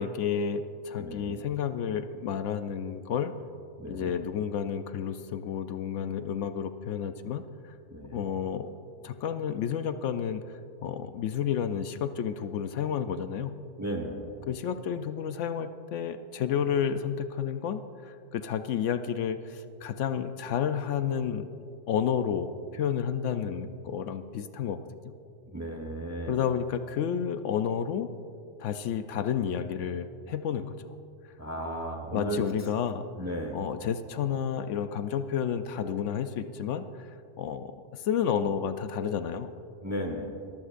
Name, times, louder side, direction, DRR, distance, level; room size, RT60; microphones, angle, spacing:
voice 1, 0.0-3.3 3.9-7.7 8.1-8.7 9.0-10.4 10.8-13.5 14.5-21.5 21.9-24.8 25.0-25.1 26.3-28.1 28.6-30.8 32.1-33.1 33.5-37.1 37.4-39.5, left 8 dB, 75° left, 10 dB, 0.9 m, -31 dB
voice 2, 1.0-1.4 3.8-4.1 7.9-8.2 13.8-14.3 25.5-26.4 31.4-32.7 33.2-33.6 39.8-40.3, right 1 dB, 15° right, 3 dB, 1.0 m, -35 dB
22.5 x 14.5 x 2.5 m, 2.5 s
omnidirectional pair, 1.3 m